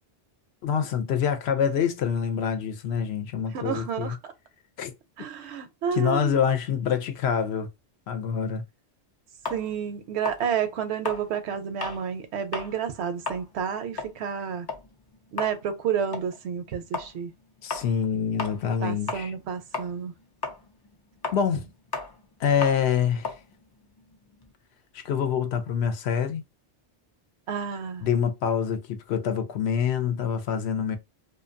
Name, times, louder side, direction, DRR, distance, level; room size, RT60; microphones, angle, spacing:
voice 1, 0.6-4.2 4.8-4.9 5.9-7.7 8.1-8.6 17.6-19.3 21.3-21.7 22.4-23.3 24.9-26.4 28.0-31.0, left 7 dB, 75° left, 0.8 m, -26 dB
voice 2, 3.5-4.2 5.2-6.4 9.5-14.7 15.3-17.3 18.8-20.1 27.5-28.1, right 7 dB, 80° right, 0.9 m, -30 dB
sound 1, 9.4-12.1 12.4-12.8 13.1-19.5 19.7-24.5, left 4 dB, 40° left, 0.3 m, -36 dB
2.5 x 2.3 x 2.5 m
omnidirectional pair, 1.1 m